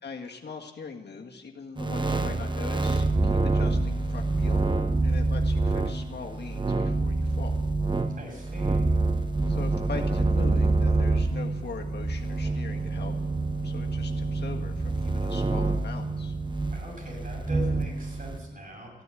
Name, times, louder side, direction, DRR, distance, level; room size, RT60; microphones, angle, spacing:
voice 1, 0.0-4.7 5.0-7.6 9.5-13.1 13.6-16.3, left 5 dB, 65° left, 2 dB, 1.7 m, -41 dB
sound 1, 1.8-18.4, right 3 dB, 25° right, 1.0 m, -26 dB
voice 2, 8.2-8.9 16.7-18.9, equal, 50° right, -1 dB, 7.2 m, -41 dB
14.5 x 9.5 x 9.0 m, 1.1 s
cardioid pair, 55°, 19 cm